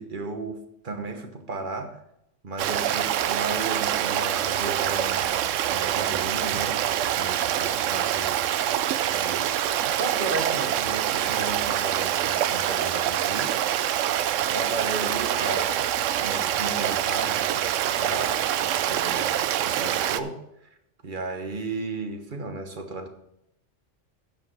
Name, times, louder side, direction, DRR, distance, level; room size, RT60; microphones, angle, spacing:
voice 1, 0.0-2.0 2.4-8.7 9.1-9.6 9.9-14.0 14.5-15.9 16.2-20.4 21.0-23.1, right 3 dB, 45° right, 6 dB, 1.3 m, -34 dB
Stream, 2.6-20.2, right 11 dB, 85° right, 0.9 m, -25 dB
15.0 x 5.2 x 4.7 m, 0.80 s
omnidirectional pair, 1.3 m